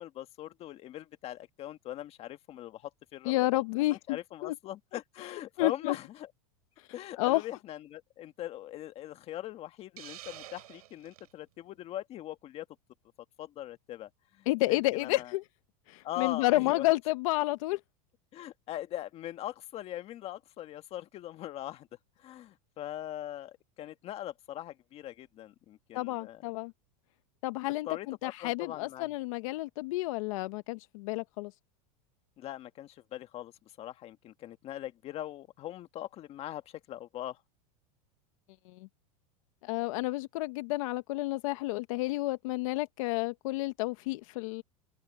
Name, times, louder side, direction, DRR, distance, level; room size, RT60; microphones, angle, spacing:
voice 1, 0.0-3.6 3.9-6.3 6.9-12.6 13.4-15.3 16.0-16.8 18.3-21.9 22.2-26.4 27.8-29.1 32.4-33.5 33.8-37.4, left 13 dB, 30° left, 1.6 m, -41 dB
voice 2, 3.3-4.2 4.4-4.5 5.6-6.0 7.2-7.4 14.5-15.4 15.9-17.8 25.9-26.7 27.4-31.5 38.7-38.9 39.6-44.6, left 19 dB, 60° left, 0.8 m, -30 dB
Hiss, 10.0-11.3, right 14 dB, 85° right, 7.2 m, -48 dB
open air
supercardioid pair, 145°, 19 cm